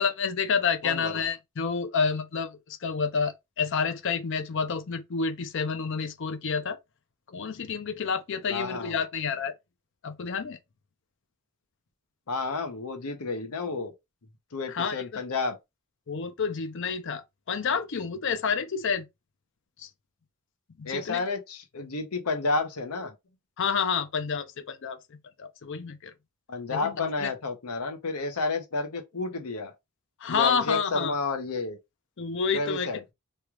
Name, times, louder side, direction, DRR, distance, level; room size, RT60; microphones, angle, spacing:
voice 1, 0.0-6.8 7.3-9.5 10.0-10.6 14.7-15.2 16.1-19.1 19.8-19.9 20.8-21.2 23.6-25.0 25.4-26.1 26.7-27.3 30.2-31.1 32.2-32.9, left 6 dB, 55° left, 0.5 m, -29 dB
voice 2, 0.8-1.2 8.5-9.0 12.3-13.9 14.5-15.6 20.8-23.1 26.5-29.7 30.3-31.8 32.5-33.0, left 3 dB, 85° left, 0.8 m, -31 dB
3.2 x 2.3 x 3.0 m
head